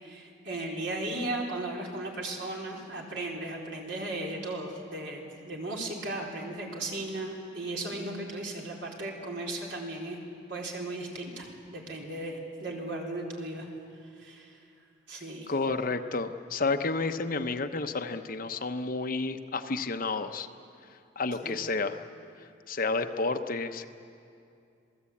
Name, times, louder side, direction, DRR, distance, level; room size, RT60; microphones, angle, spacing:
voice 1, 0.0-10.2 10.5-13.7 14.2-14.6 15.1-15.5 21.4-21.6, right 2 dB, 65° right, -1 dB, 4.2 m, -36 dB
voice 2, 15.5-20.5 21.2-22.0 22.7-23.9, left 3 dB, 45° left, 7 dB, 0.9 m, -30 dB
26.5 x 18.5 x 8.6 m, 2.5 s
head